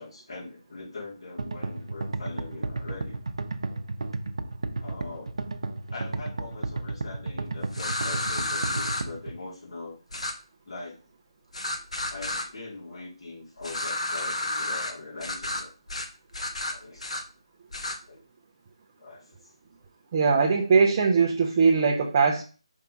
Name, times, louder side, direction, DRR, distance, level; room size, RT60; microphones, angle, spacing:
voice 1, 0.0-3.2 4.8-5.4 5.9-10.0 10.6-11.0 12.1-15.7 16.7-17.1 18.1-18.2 19.0-19.5, left 3 dB, 50° left, -4 dB, 3.1 m, -41 dB
sound 1, 1.4-9.3, right 3 dB, 60° right, 0.8 m, -32 dB
sound 2, 7.7-9.0 10.1-10.3 11.5-12.5 13.6-14.9 15.2-15.6 15.9-16.1 16.3-17.2 17.7-18.0, left 1 dB, 80° left, 1.3 m, -31 dB
voice 2, 20.1-22.4, right 5 dB, 20° right, -1 dB, 0.6 m, -21 dB
5.7 x 3.6 x 5.2 m, 0.35 s
figure-of-eight pair, 175°, 3 cm